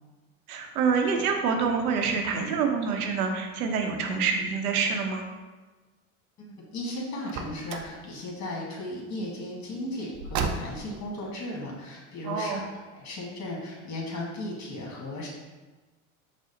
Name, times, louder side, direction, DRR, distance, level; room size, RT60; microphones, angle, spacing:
voice 1, 0.5-5.2 12.2-12.6, right 5 dB, 85° right, 3 dB, 0.7 m, -26 dB
voice 2, 6.4-12.6 12.9-15.3, left 1 dB, 40° left, -2 dB, 1.4 m, -36 dB
Car, 7.2-8.0 10.1-11.0, right 5 dB, 55° right, 0.6 m, -32 dB
5.0 x 2.1 x 3.8 m, 1.2 s
hypercardioid pair, 80°, 43 cm